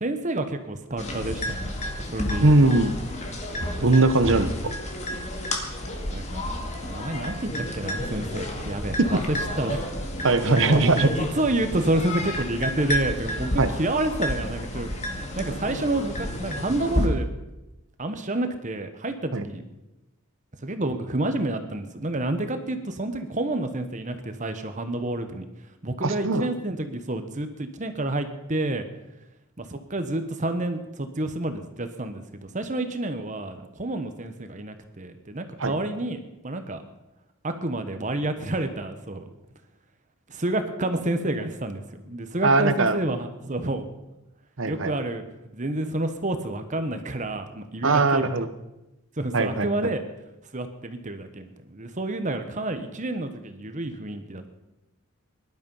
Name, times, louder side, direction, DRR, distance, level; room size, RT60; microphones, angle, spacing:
voice 1, 0.0-2.5 6.1-6.5 6.8-7.5 7.7-9.8 10.4-14.9 15.3-17.3 18.0-19.6 20.6-25.5 25.8-28.8 29.6-36.8 37.4-39.2 40.3-43.9 44.7-45.2 45.5-48.3 49.2-50.0 50.5-54.6, right 2 dB, 35° right, 8 dB, 1.2 m, -29 dB
sound 1, 1.0-17.1, left 1 dB, 30° left, 2.1 m, -31 dB
voice 2, 2.4-2.9 3.8-4.5 10.2-11.1 13.6-13.7 19.3-19.4 26.0-26.5 35.6-35.7 42.4-43.0 44.6-44.9 47.8-48.5 49.3-49.7, right 2 dB, 60° right, 12 dB, 1.0 m, -20 dB
19.5 x 12.0 x 5.6 m, 0.98 s
head